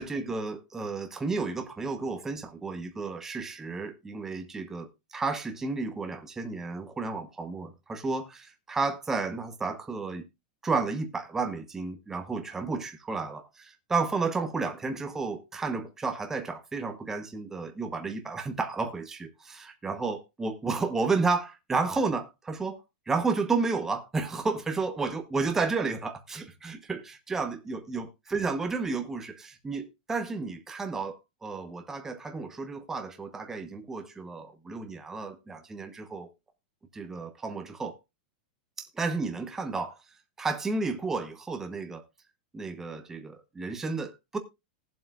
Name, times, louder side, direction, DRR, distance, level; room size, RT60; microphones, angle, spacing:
voice 1, 0.0-10.2 10.6-22.8 23.1-36.3 36.9-38.0 38.8-40.0 40.4-42.0 42.5-44.4, right 4 dB, 10° right, 0.9 m, -32 dB
19.5 x 7.6 x 2.3 m
supercardioid pair, 165°, 5 cm